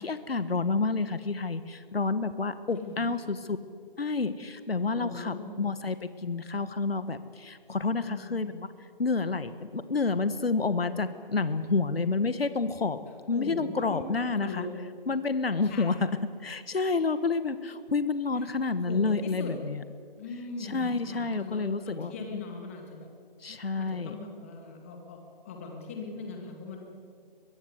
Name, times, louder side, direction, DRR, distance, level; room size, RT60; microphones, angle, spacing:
voice 1, 0.0-3.6 4.0-8.7 9.0-13.0 13.3-14.7 15.1-15.9 16.4-19.8 20.6-22.4 23.4-24.1, left 4 dB, 85° left, 11 dB, 1.5 m, -29 dB
voice 2, 2.8-3.1 4.8-5.5 8.1-8.4 13.3-14.1 14.4-14.7 15.6-16.0 18.9-19.5 20.2-23.1 23.8-26.8, left 3 dB, 15° left, 2 dB, 2.1 m, -40 dB
22.5 x 22.0 x 8.1 m, 2.1 s
figure-of-eight pair, 170°, 29 cm